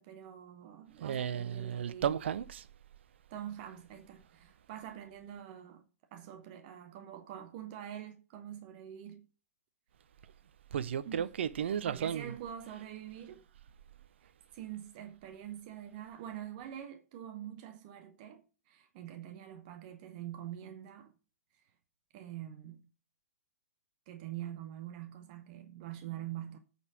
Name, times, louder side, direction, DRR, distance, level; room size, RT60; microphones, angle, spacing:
voice 1, 0.0-2.2 3.3-9.2 11.1-11.3 11.6-13.4 14.2-21.1 22.1-22.9 24.1-26.6, right 11 dB, 35° right, 1.1 m, -45 dB
voice 2, 1.0-2.7 10.7-12.3, right 8 dB, 50° right, 0.7 m, -34 dB
8.8 x 4.3 x 6.1 m
figure-of-eight pair, 120°, 8 cm